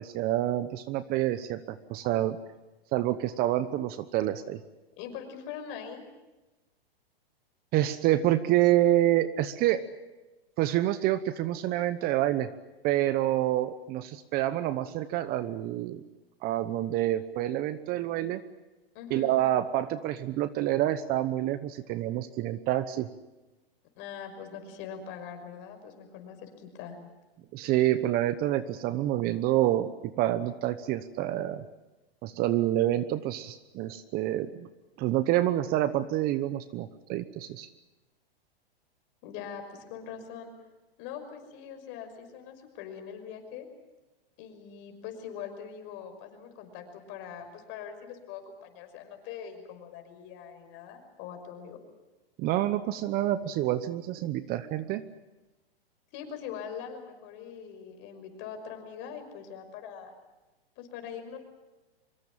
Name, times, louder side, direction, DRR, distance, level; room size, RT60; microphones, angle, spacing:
voice 1, 0.0-2.4 2.9-4.6 7.7-9.8 10.6-12.5 12.8-16.0 16.4-18.4 19.1-23.1 27.5-31.6 32.2-34.7 35.0-37.7 52.4-55.0, right 14 dB, 30° right, 14 dB, 1.0 m, -27 dB
voice 2, 5.0-6.0 18.9-19.4 23.9-27.0 39.2-40.5 41.0-43.7 44.4-51.8 56.1-60.1 60.8-61.4, left 8 dB, 40° left, 6 dB, 5.9 m, -42 dB
24.5 x 22.5 x 7.4 m, 1.1 s
hypercardioid pair, 130°, 30 cm